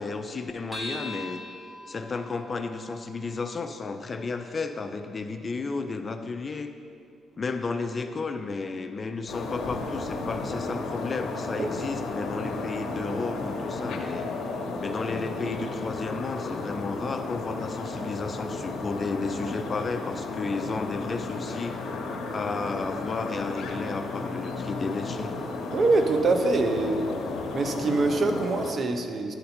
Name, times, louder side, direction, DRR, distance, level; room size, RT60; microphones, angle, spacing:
voice 1, 0.0-1.4 1.9-6.7 7.4-14.3 14.8-21.8 22.3-25.3, left 4 dB, 35° left, 7 dB, 0.4 m, -33 dB
sound 1, 0.7-5.5, left 1 dB, 15° right, 1.8 m, -43 dB
sound 2, 9.3-28.7, left 3 dB, 75° left, 0.8 m, -33 dB
voice 2, 25.7-27.1 27.5-29.3, right 3 dB, 45° right, 6 dB, 0.6 m, -24 dB
10.5 x 3.9 x 4.3 m, 2.3 s
cardioid pair, 90°, 0 cm